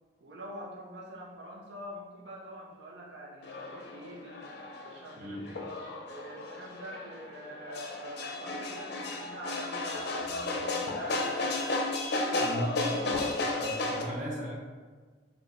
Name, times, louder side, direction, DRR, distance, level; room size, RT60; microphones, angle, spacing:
voice 1, 0.2-4.5 4.8-5.8 6.1-11.6 12.1-13.2 13.9-14.4, right 1 dB, 85° right, -3 dB, 0.6 m, -46 dB
sound 1, 3.4-14.0, left 2 dB, 65° left, 0.4 m, -33 dB
voice 2, 12.4-12.8 13.6-14.6, equal, 45° right, -4 dB, 0.6 m, -36 dB
4.4 x 2.1 x 2.5 m, 1.5 s
head